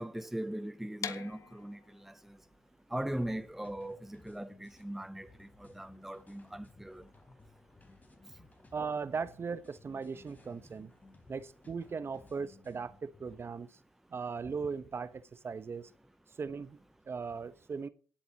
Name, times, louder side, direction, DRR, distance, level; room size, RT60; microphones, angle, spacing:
voice 1, 0.0-2.1 2.9-7.0, right 1 dB, 5° right, 0.7 m, -39 dB
sound 1, 1.0-6.8, left 7 dB, 55° left, 1.4 m, -47 dB
sound 2, 3.1-13.4, left 2 dB, 25° left, 3.8 m, -59 dB
voice 2, 8.7-10.9 11.3-13.8 14.1-15.9 16.4-17.9, right 5 dB, 40° right, 1.1 m, -38 dB
18.5 x 8.5 x 3.0 m
supercardioid pair, 60°, 7 cm